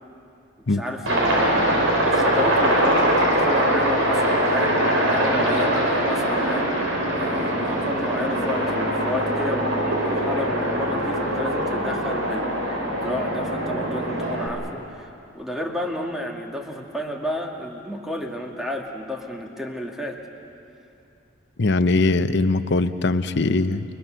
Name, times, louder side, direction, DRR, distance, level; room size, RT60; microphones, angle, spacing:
voice 1, 0.7-1.7 2.0-6.7 7.1-20.2, left 1 dB, ahead, 0 dB, 2.0 m, -31 dB
Aircraft, 1.1-14.5, right 1 dB, 80° right, 4.4 m, -22 dB
voice 2, 21.6-23.8, left 2 dB, 60° left, 11 dB, 0.8 m, -21 dB
29.5 x 21.0 x 6.4 m, 2.6 s
head